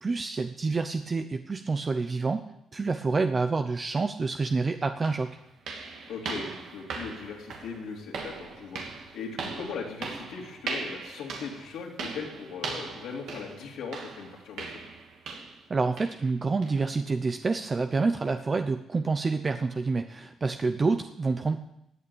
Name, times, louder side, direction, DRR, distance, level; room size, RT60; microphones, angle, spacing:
voice 1, 0.0-2.5 2.7-5.4 15.7-21.7, right 4 dB, 30° right, 8 dB, 0.7 m, -28 dB
sound 1, 4.5-4.6 5.0-15.7 16.0-16.3 16.6-16.8 17.3-17.4 17.9-18.0, right 4 dB, 75° right, 2.6 m, -39 dB
voice 2, 6.1-14.8, left 5 dB, 80° left, -1 dB, 3.0 m, -39 dB
16.5 x 8.7 x 7.1 m, 0.81 s
cardioid pair, 90°, 0 cm